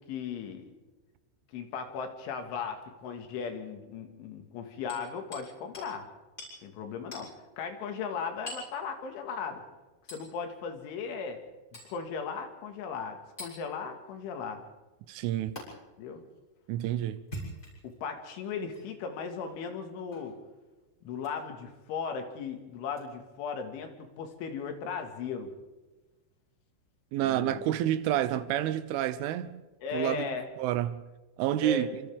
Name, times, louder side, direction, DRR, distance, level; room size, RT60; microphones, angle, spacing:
voice 1, 0.1-0.7 1.5-6.1 6.6-7.3 7.6-9.6 10.1-11.4 11.7-14.6 16.0-16.2 17.8-20.4 21.0-25.5 27.2-27.6 29.8-30.5 31.6-31.9, left 5 dB, 75° left, 4.2 m, -37 dB
Hammer, 4.9-5.5 5.7-5.9 6.4-6.6 7.1-7.3 8.5-8.7 10.1-10.3 11.7-11.9 13.4-13.6 15.6-15.7 17.2-17.9 18.7-18.8 20.1-20.3 21.2-21.4 22.9-23.0, equal, 15° left, 7.2 m, -43 dB
voice 2, 15.1-15.6 16.7-17.2 27.1-29.6 29.9-31.0 31.4-31.9, right 12 dB, 80° right, 3.2 m, -29 dB
28.0 x 26.0 x 3.6 m
omnidirectional pair, 5.7 m